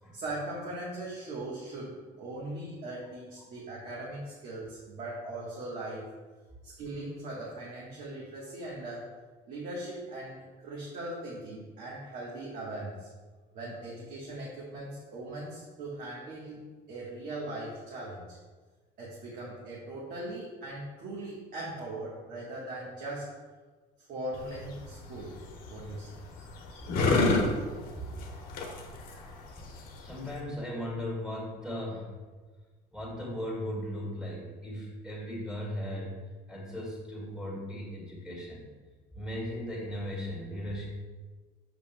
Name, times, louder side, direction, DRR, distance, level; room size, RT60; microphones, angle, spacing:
voice 1, 0.1-6.1 6.6-9.1 9.5-13.1 13.5-18.4 19.0-23.3 24.0-25.4 25.7-26.2, right 1 dB, 45° right, -6 dB, 1.3 m, -40 dB
sound 1, 24.3-30.4, left 2 dB, 50° left, 1.1 m, -31 dB
voice 2, 30.0-32.2 32.9-36.2 36.5-38.6 39.1-40.9, equal, 5° right, -4 dB, 2.1 m, -37 dB
7.9 x 7.1 x 2.2 m, 1.4 s
cardioid pair, 175°, 19 cm